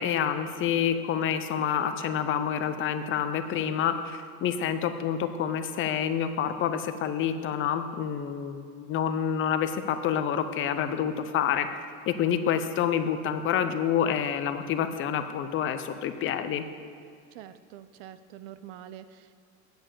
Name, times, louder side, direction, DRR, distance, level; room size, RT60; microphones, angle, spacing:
voice 1, 0.0-11.7 12.1-16.6, left 8 dB, 35° left, 10 dB, 0.6 m, -28 dB
voice 2, 17.3-19.3, right 11 dB, 65° right, 13 dB, 0.6 m, -45 dB
8.8 x 5.3 x 7.2 m, 2.3 s
supercardioid pair, 125°, 34 cm